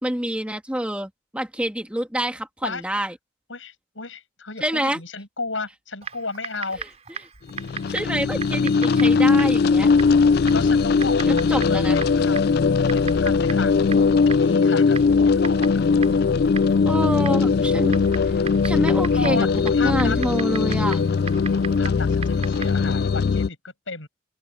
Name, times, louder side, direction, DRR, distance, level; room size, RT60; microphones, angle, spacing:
voice 1, 0.0-3.1 4.6-5.0 7.9-9.9 11.5-12.0 16.9-18.0 18.6-19.5 19.8-21.0, equal, 5° right, 1.9 m, -27 dB
voice 2, 2.6-3.1 3.5-6.8 10.5-13.7 14.2-15.8 19.2-20.2 21.5-24.1, left 3 dB, 80° left, 6.7 m, -33 dB
Typing, 6.0-22.9, right 6 dB, 35° right, 4.2 m, -38 dB
sound 1, 7.5-23.5, left 5 dB, 50° left, 0.3 m, -20 dB
open air
head